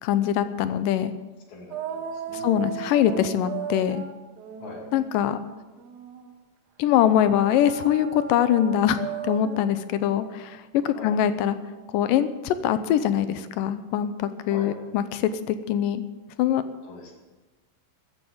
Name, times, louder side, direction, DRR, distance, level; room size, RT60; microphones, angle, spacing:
voice 1, 0.0-1.1 2.3-4.0 4.9-5.4 6.8-11.6 11.9-16.0 16.4-16.6, left 10 dB, 80° left, 12 dB, 2.3 m, -23 dB
voice 2, 1.5-2.5 4.6-4.9 10.9-11.2 14.5-14.7 16.8-17.1, left 3 dB, 55° left, -1 dB, 3.9 m, -42 dB
sound 1, 1.7-6.4 7.2-11.9, right 7 dB, 85° right, 3.0 m, -37 dB
14.0 x 10.0 x 7.1 m, 1.2 s
omnidirectional pair, 4.0 m